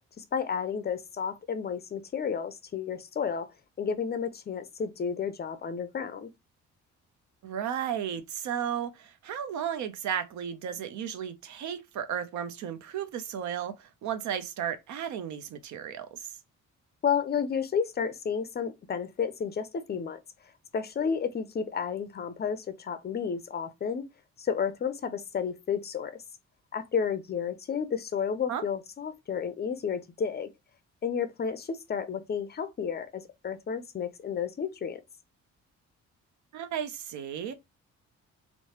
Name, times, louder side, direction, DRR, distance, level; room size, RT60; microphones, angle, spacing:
voice 1, 0.2-3.5 3.8-6.3 17.0-20.2 20.7-24.1 24.4-26.1 26.7-30.5 31.0-35.0, left 6 dB, 35° left, 0.4 m, -31 dB
voice 2, 7.4-16.3 28.5-28.6 36.5-37.5, right 9 dB, 70° right, 0.6 m, -34 dB
3.0 x 2.0 x 2.8 m
cardioid pair, 90°, 30 cm